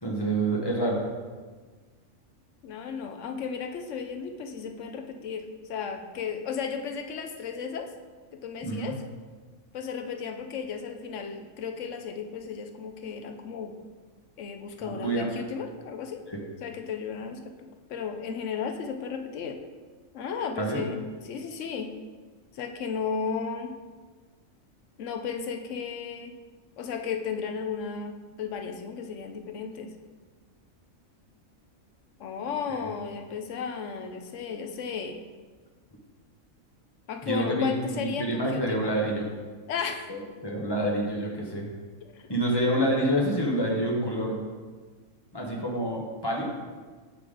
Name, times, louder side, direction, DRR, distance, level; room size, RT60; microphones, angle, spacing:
voice 1, 0.0-1.0 8.6-8.9 14.8-15.3 16.3-16.4 20.6-20.8 32.7-32.8 37.2-39.3 40.1-41.7 42.3-44.4 45.3-46.5, right 1 dB, 20° left, -2 dB, 0.9 m, -27 dB
voice 2, 2.6-7.9 8.3-9.0 9.7-13.8 14.4-16.2 16.6-19.6 20.1-21.9 22.5-23.7 25.0-26.3 26.8-29.9 32.2-35.2 37.1-38.9 39.7-40.1 41.4-41.5 42.1-42.3, left 6 dB, 70° left, 5 dB, 0.9 m, -34 dB
6.7 x 3.8 x 4.9 m, 1.4 s
omnidirectional pair, 1.4 m